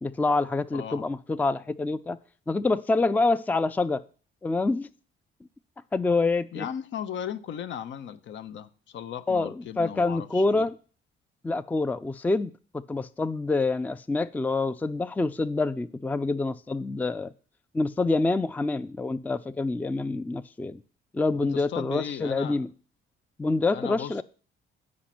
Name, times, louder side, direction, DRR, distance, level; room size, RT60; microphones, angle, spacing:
voice 1, 0.0-2.2 2.5-4.0 4.4-4.9 5.9-6.7 9.3-10.8 11.4-17.3 17.7-20.8 21.1-22.7 23.4-24.2, left 3 dB, 10° left, 0.4 m, -26 dB
voice 2, 0.7-1.0 6.5-10.7 21.3-22.6 23.7-24.2, left 9 dB, 70° left, 0.7 m, -36 dB
8.7 x 5.2 x 5.9 m
cardioid pair, 90°, 20 cm